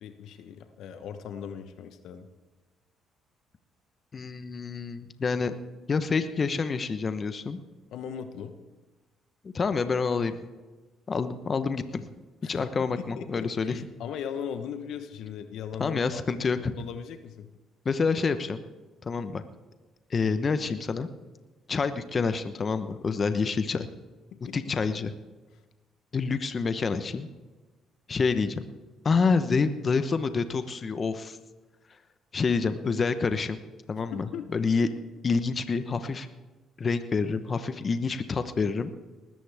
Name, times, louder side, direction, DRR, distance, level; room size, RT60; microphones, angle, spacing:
voice 1, 0.0-2.3 7.9-8.5 12.4-12.7 12.9-17.5 24.5-24.6 34.1-34.7, left 8 dB, 75° left, 9 dB, 1.1 m, -39 dB
voice 2, 4.1-5.5 5.9-7.6 9.4-10.4 11.1-12.1 12.4-13.9 15.8-16.7 17.8-18.6 19.0-19.4 20.1-21.1 21.7-23.9 24.5-25.1 26.1-27.3 28.1-28.6 29.0-31.4 32.3-33.6 33.9-34.9 35.2-36.3 36.8-38.9, left 4 dB, 40° left, 10 dB, 1.1 m, -27 dB
19.5 x 14.0 x 3.6 m, 1.2 s
supercardioid pair, 65°, 0 cm